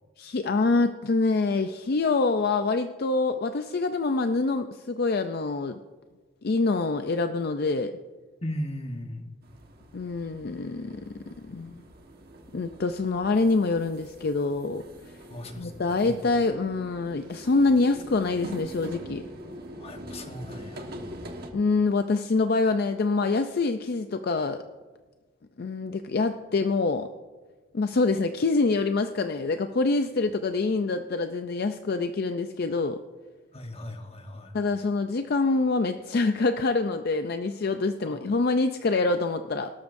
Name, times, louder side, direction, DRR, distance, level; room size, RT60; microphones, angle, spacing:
voice 1, 0.2-5.8 6.4-7.9 9.9-11.1 11.4-11.8 12.5-14.8 15.6-19.2 21.5-24.6 25.6-27.1 27.7-33.0 34.5-39.7, left 3 dB, 50° left, 8 dB, 0.5 m, -25 dB
voice 2, 8.4-9.3 15.3-16.2 19.8-20.9 33.5-34.5 38.0-38.2, left 1 dB, 30° left, 4 dB, 1.2 m, -37 dB
sound 1, 9.4-21.5, equal, 50° right, 1.4 m, -43 dB
19.5 x 12.5 x 2.6 m, 1.3 s
head